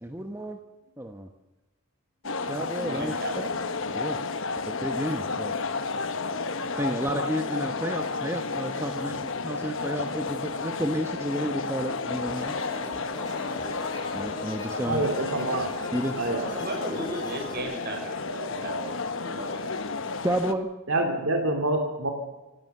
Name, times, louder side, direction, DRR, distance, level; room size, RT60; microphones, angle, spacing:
voice 1, 0.0-0.6 1.0-1.3 2.5-3.4 3.9-4.2 4.7-5.5 6.8-12.5 14.1-15.1 15.9-16.2 20.2-20.7, equal, 10° right, 5 dB, 1.1 m, -31 dB
sound 1, 2.2-20.5, left 4 dB, 60° left, 1.2 m, -32 dB
voice 2, 2.8-3.6 16.5-19.0 19.2-19.9, right 1 dB, 45° right, 3 dB, 5.9 m, -36 dB
sound 2, 12.3-17.6, left 1 dB, 20° left, 5.6 m, -40 dB
voice 3, 14.9-15.7 16.2-16.5 20.9-22.1, right 2 dB, 60° right, 4 dB, 2.7 m, -26 dB
26.5 x 16.0 x 6.7 m, 1.1 s
head